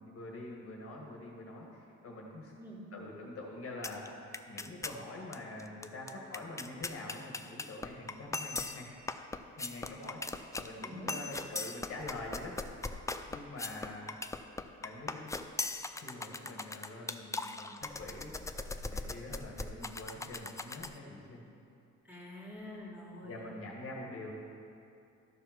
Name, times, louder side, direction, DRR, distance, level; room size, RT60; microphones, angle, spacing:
voice 1, 0.0-2.5 2.9-8.9 9.6-12.6 13.3-14.2 14.8-15.3 16.0-18.4 18.8-21.5 23.2-24.3, left 2 dB, 50° left, -2 dB, 1.8 m, -45 dB
sound 1, 3.8-4.1 4.3-5.0 5.3-5.4 5.6-21.0, left 3 dB, 10° left, 0.4 m, -39 dB
voice 2, 10.8-11.1 22.1-23.4, left 1 dB, 5° right, -5 dB, 2.7 m, -47 dB
13.0 x 4.7 x 6.1 m, 2.6 s
cardioid pair, 90°, 30 cm